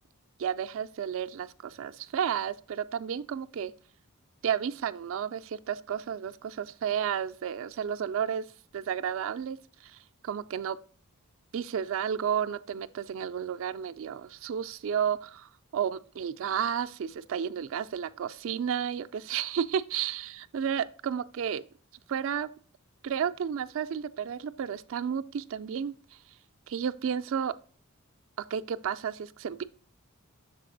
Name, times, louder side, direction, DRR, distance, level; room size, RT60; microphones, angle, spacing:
voice 1, 0.4-3.7 4.4-8.4 8.7-9.6 9.8-10.0 10.2-10.8 11.5-21.6 22.1-22.5 23.0-25.9 26.7-27.5 28.5-29.6, right 8 dB, 65° right, 0.3 m, -32 dB
6.7 x 4.1 x 3.8 m
head